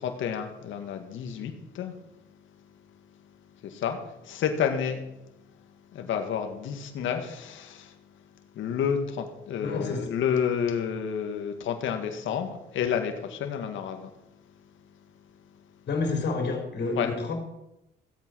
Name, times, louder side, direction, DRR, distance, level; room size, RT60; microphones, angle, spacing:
voice 1, 0.0-2.0 3.6-5.0 5.9-8.0 8.5-14.1 17.0-17.1, left 7 dB, 80° left, 5 dB, 1.8 m, -30 dB
voice 2, 9.6-10.1 15.9-17.3, left 3 dB, 60° left, 3 dB, 4.0 m, -29 dB
16.0 x 8.3 x 6.2 m, 0.89 s
cardioid pair, 90°, 20 cm